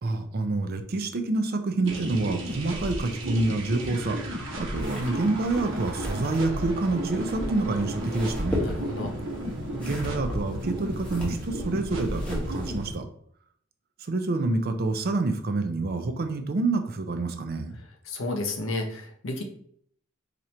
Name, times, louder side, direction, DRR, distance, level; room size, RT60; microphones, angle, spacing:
voice 1, 0.0-8.7 9.8-13.1 14.0-17.8, right 2 dB, 50° right, 7 dB, 0.5 m, -27 dB
sound 1, 1.8-12.9, equal, 70° right, 0.9 m, -34 dB
sound 2, 4.7-13.0, equal, 5° left, 1.0 m, -36 dB
voice 2, 8.6-9.1 18.1-19.4, left 2 dB, 75° left, 3 dB, 0.7 m, -31 dB
2.9 x 2.5 x 4.3 m, 0.64 s
head